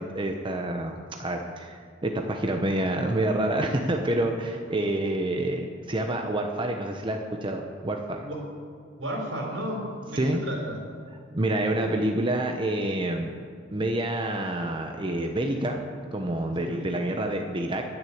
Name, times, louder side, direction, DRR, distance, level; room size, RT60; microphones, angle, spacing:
voice 1, 0.0-8.3 10.1-10.4 11.3-13.3 13.7-15.8 16.1-17.8, right 1 dB, 25° right, 3 dB, 0.9 m, -28 dB
voice 2, 9.0-10.8 16.6-16.9, equal, 80° right, -1 dB, 4.2 m, -33 dB
11.0 x 9.6 x 8.6 m, 2.2 s
head